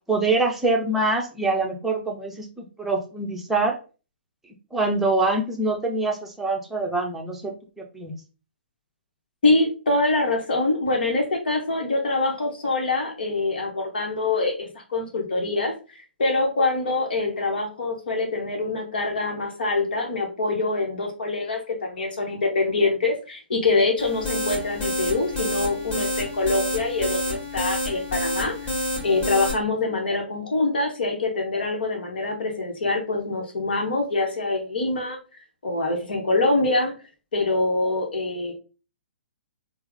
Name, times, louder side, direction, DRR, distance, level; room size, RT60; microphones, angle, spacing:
voice 1, 0.1-3.8 4.7-8.1, right 2 dB, 5° right, 0 dB, 0.7 m, -25 dB
voice 2, 9.4-28.6 29.0-35.2 35.6-36.9 37.3-38.5, left 2 dB, 60° left, 1 dB, 1.0 m, -24 dB
sound 1, 24.0-29.5, left 1 dB, 15° left, 1.4 m, -28 dB
4.5 x 2.0 x 3.4 m, 0.34 s
figure-of-eight pair, 120°, 6 cm